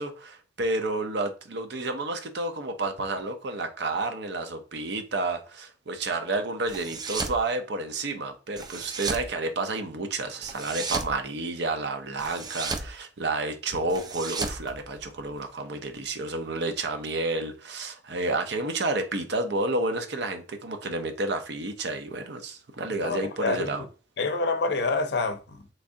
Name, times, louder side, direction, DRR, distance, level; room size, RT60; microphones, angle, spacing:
voice 1, 0.0-23.8, right 2 dB, 70° right, 0.6 m, -30 dB
sound 1, 6.7-7.4 8.6-9.3 10.4-11.2 12.2-12.9 13.9-15.4, right 4 dB, 25° right, 0.4 m, -34 dB
voice 2, 22.9-23.9 24.2-25.6, left 3 dB, 65° left, 0.5 m, -27 dB
3.2 x 2.6 x 3.6 m
head